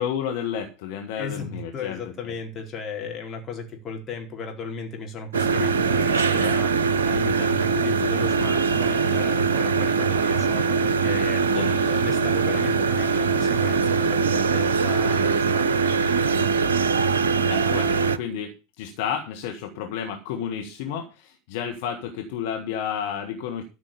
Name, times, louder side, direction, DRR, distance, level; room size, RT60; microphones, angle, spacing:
voice 1, 0.0-2.0 2.2-2.3 11.5-12.2 17.5-23.6, left 8 dB, 60° left, 4 dB, 1.7 m, -31 dB
voice 2, 1.2-11.6 11.8-16.3, left 4 dB, 35° left, 2 dB, 4.3 m, -35 dB
sound 1, 5.3-18.2, right 5 dB, 75° right, 0.7 m, -22 dB
13.0 x 6.1 x 6.8 m, 0.31 s
figure-of-eight pair, 75°, 0 cm